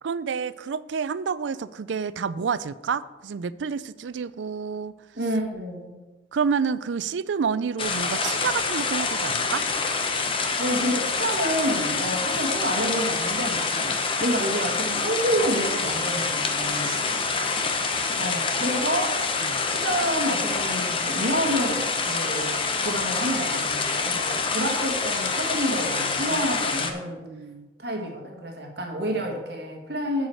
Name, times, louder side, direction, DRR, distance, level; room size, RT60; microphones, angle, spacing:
voice 1, 0.0-4.9 6.3-9.6 11.9-12.0 13.7-14.0 16.8-17.3 19.4-19.6 24.3-24.6 26.3-26.4 27.2-27.7, right 6 dB, 80° right, 16 dB, 0.4 m, -29 dB
voice 2, 5.2-6.0 10.6-13.7 14.2-17.0 18.1-19.2 19.7-22.6 22.8-27.2 27.8-30.3, equal, 60° right, 2 dB, 1.6 m, -28 dB
sound 1, 7.8-26.9, left 4 dB, 30° left, 0.8 m, -26 dB
9.2 x 4.8 x 7.7 m, 1.2 s
head